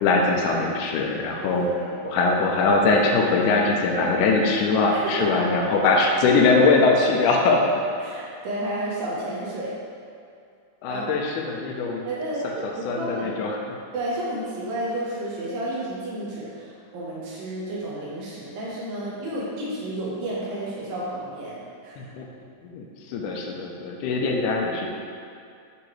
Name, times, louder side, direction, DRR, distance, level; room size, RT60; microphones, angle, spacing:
voice 1, 0.0-1.7 2.0-7.6 10.8-12.1 12.9-13.6 22.0-22.3 22.7-24.9, left 3 dB, 80° left, 0 dB, 2.0 m, -21 dB
voice 2, 4.9-5.7 8.0-9.7 10.9-11.0 12.0-13.3 13.9-22.1, right 1 dB, 85° right, -6 dB, 2.8 m, -31 dB
8.8 x 4.8 x 3.2 m, 2.4 s
omnidirectional pair, 4.0 m